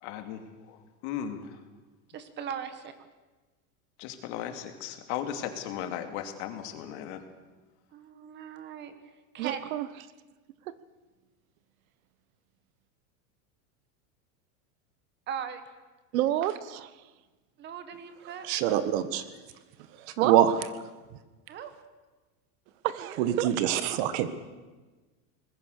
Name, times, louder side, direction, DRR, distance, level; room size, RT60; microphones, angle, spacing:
voice 1, 0.0-1.6 4.0-7.2, left 9 dB, 50° left, 6 dB, 2.7 m, -37 dB
voice 2, 2.1-2.9 7.9-9.0 9.3-9.7 15.3-15.6 17.6-18.5 21.5-21.7, right 8 dB, 25° right, 10 dB, 1.7 m, -38 dB
voice 3, 9.4-9.9 10.7-10.8 16.1-16.9 20.2-20.4 22.8-23.5, right 13 dB, 70° right, 15 dB, 1.3 m, -29 dB
voice 4, 18.4-19.2 20.0-20.5 23.2-24.3, right 11 dB, 45° right, 12 dB, 1.6 m, -25 dB
25.0 x 20.5 x 6.7 m, 1.3 s
supercardioid pair, 170°, 42 cm